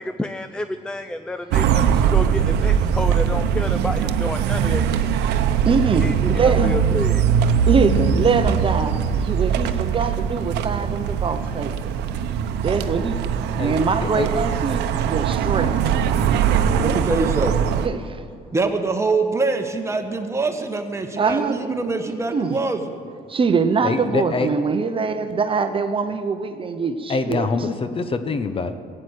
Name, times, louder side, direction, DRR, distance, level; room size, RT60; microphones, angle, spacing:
voice 1, 0.0-5.1 6.0-7.3 15.1-15.2, left 1 dB, 5° left, 9 dB, 0.4 m, -30 dB
sound 1, 1.5-17.9, right 8 dB, 80° right, 0.8 m, -21 dB
voice 2, 5.7-6.7 7.7-9.0 9.3-11.7 12.6-13.2 13.6-15.7 17.8-18.2 21.2-21.8 22.3-22.6 23.3-27.5, right 5 dB, 30° right, 9 dB, 0.8 m, -23 dB
voice 3, 13.6-14.3 23.8-24.5 27.1-28.7, left 4 dB, 35° left, 10 dB, 0.9 m, -25 dB
voice 4, 16.7-17.6 18.5-23.0, right 3 dB, 15° right, 5 dB, 1.3 m, -24 dB
15.0 x 8.8 x 8.1 m, 2.2 s
cardioid pair, 110°, 17 cm